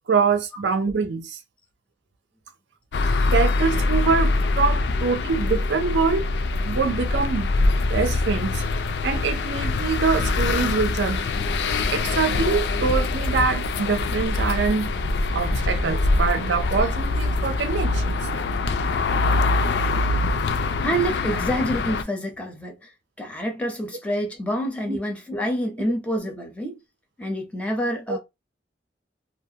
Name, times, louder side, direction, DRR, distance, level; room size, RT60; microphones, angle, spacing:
voice 1, 0.1-1.4 3.3-6.3 6.6-8.6 9.0-11.2 11.9-14.9 15.3-18.3 24.9-25.0 28.1-28.2, right 5 dB, 85° right, 0.5 m, -24 dB
sound 1, 2.9-22.0, left 3 dB, 70° left, 0.4 m, -24 dB
voice 2, 20.8-22.8 23.2-26.8 27.2-28.2, equal, 10° left, 0.5 m, -27 dB
2.4 x 2.2 x 2.7 m
head